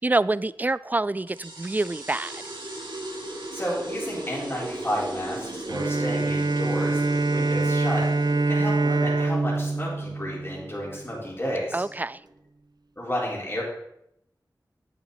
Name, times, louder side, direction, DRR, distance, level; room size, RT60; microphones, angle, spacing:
voice 1, 0.0-2.4 11.7-12.2, right 2 dB, 20° right, 19 dB, 0.3 m, -26 dB
sound 1, 1.3-12.3, right 2 dB, 90° right, 2.1 m, -38 dB
voice 2, 3.5-11.8 13.0-13.6, equal, 30° left, -6 dB, 4.4 m, -32 dB
Bowed string instrument, 5.7-11.2, right 3 dB, 60° right, 0.6 m, -25 dB
9.1 x 8.8 x 4.1 m, 0.79 s
cardioid pair, 40°, 8 cm